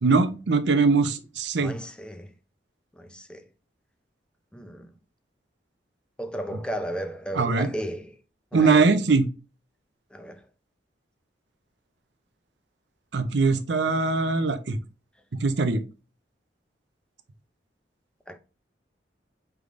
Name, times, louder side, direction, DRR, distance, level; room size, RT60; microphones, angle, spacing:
voice 1, 0.0-1.8 7.4-7.7 8.5-9.3 13.1-14.8 15.4-15.8, right 4 dB, 75° right, 0.6 m, -21 dB
voice 2, 1.6-2.3 3.0-3.4 4.5-4.9 6.2-8.1 8.5-8.9 10.1-10.4 18.3-18.4, equal, 5° left, 0.5 m, -34 dB
4.9 x 3.4 x 2.5 m
head